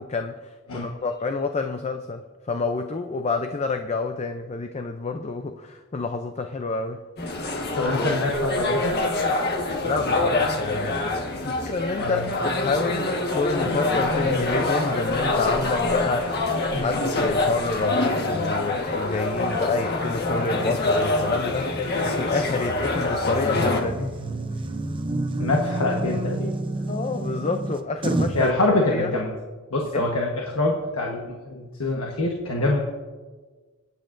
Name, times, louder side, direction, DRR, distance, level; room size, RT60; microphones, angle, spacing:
voice 1, 0.0-7.0 9.8-11.0 11.4-24.2 26.9-28.5 28.9-29.1 29.9-30.1, left 4 dB, 30° left, 6 dB, 0.5 m, -28 dB
sound 1, 7.2-23.8, left 2 dB, 50° left, 1.4 m, -25 dB
voice 2, 7.7-8.9 11.9-12.2 16.7-17.0 25.4-26.5 28.3-29.3 29.7-32.8, left 2 dB, 75° left, 0 dB, 1.2 m, -25 dB
sound 2, 22.7-28.5, right 2 dB, 25° right, 0.6 m, -29 dB
24.0 x 9.0 x 2.6 m, 1.4 s
head